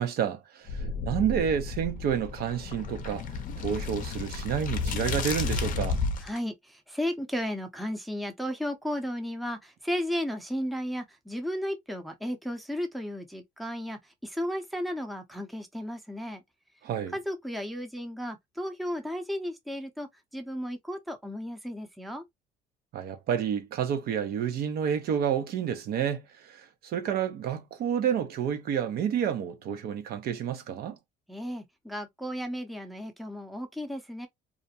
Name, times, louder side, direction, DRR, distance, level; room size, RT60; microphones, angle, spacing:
voice 1, 0.0-3.3 3.6-6.0 16.8-17.1 22.9-31.0, right 8 dB, 65° right, 0.6 m, -29 dB
sound 1, 0.7-6.4, left 4 dB, 50° left, 0.5 m, -32 dB
voice 2, 6.2-16.4 17.1-22.2 31.3-34.3, equal, ahead, 0.6 m, -34 dB
2.5 x 2.1 x 2.6 m
cardioid pair, 110°, 17 cm